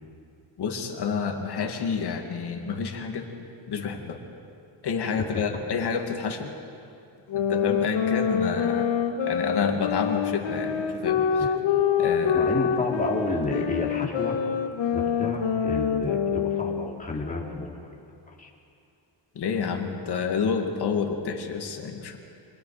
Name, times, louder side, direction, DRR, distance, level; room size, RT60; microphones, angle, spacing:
voice 1, 0.6-3.3 3.7-4.2 4.8-6.5 7.3-8.9 9.3-11.5 12.0-12.5 19.3-22.2, left 6 dB, 60° left, 3 dB, 2.6 m, -29 dB
sound 1, 7.3-17.0, left 7 dB, 80° left, 1.9 m, -26 dB
voice 2, 12.3-14.4 14.9-17.9 18.3-18.5, left 3 dB, 20° left, -2 dB, 3.4 m, -31 dB
28.5 x 25.0 x 5.2 m, 2.5 s
cardioid pair, 145°, 44 cm